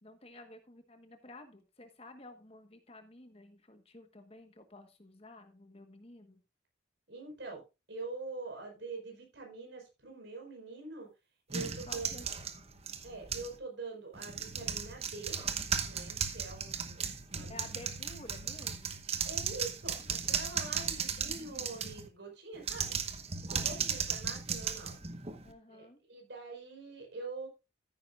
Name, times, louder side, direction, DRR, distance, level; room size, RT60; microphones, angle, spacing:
voice 1, 0.0-6.4 11.9-12.2 12.5-12.8 17.5-19.0 23.5-23.9 25.4-26.0, left 2 dB, 30° left, 8 dB, 1.3 m, -52 dB
voice 2, 7.1-7.6 7.9-11.1 11.5-12.2 13.0-15.4 15.8-17.6 19.2-23.0 23.5-24.9 25.7-27.5, right 3 dB, 65° right, 1 dB, 4.9 m, -44 dB
sound 1, 11.5-13.6 14.1-22.1 22.6-25.5, right 7 dB, 30° right, 1.0 m, -36 dB
14.0 x 9.6 x 2.5 m, 0.27 s
head